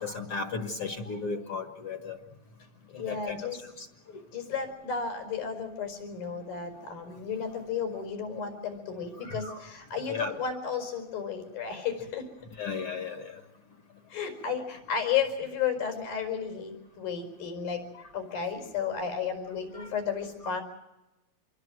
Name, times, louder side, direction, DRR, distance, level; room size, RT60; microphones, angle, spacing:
voice 1, 0.0-2.2 2.9-3.5 3.8-3.9 4.1-4.2 9.2-9.6 10.1-10.3 12.6-13.4 19.7-19.9, left 4 dB, 50° left, 6 dB, 1.9 m, -35 dB
voice 2, 2.9-3.6 4.3-12.3 14.1-17.8 18.1-20.6, left 7 dB, 85° left, 6 dB, 6.7 m, -33 dB
27.0 x 22.5 x 6.2 m, 0.96 s
omnidirectional pair, 4.1 m